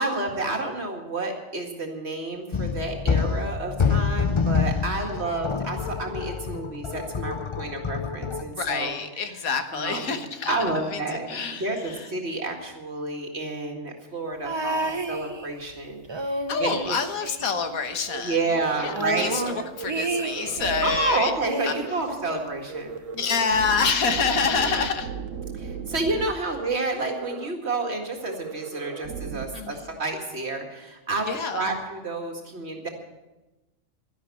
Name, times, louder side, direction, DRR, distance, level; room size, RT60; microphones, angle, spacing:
voice 1, 0.0-8.9 9.2-9.3 9.7-10.2 10.5-17.0 18.2-19.6 20.8-23.0 24.4-24.7 25.5-32.9, right 2 dB, 50° right, 2 dB, 2.3 m, -30 dB
sound 1, 2.5-8.4, left 5 dB, 50° left, 0.3 m, -27 dB
voice 2, 8.4-10.5 10.9-12.1 16.5-18.4 18.8-21.3 21.6-21.7 23.1-25.1 29.5-29.8 31.3-31.7, left 5 dB, 85° left, 8 dB, 1.7 m, -27 dB
sound 2, 14.4-15.7 16.0-18.0 18.2-18.3 18.6-21.0 21.4-22.7 23.6-23.7, right 2 dB, 30° right, 0.6 m, -31 dB
sound 3, 18.1-18.2 18.5-19.0 19.3-19.4 19.7-21.1 21.5-22.0 22.2-22.4 22.7-26.3 26.5-26.7 27.0-27.5 27.8-27.9 28.2-29.4, right 6 dB, 70° right, 1.3 m, -36 dB
12.0 x 11.0 x 8.4 m, 1.1 s
omnidirectional pair, 1.4 m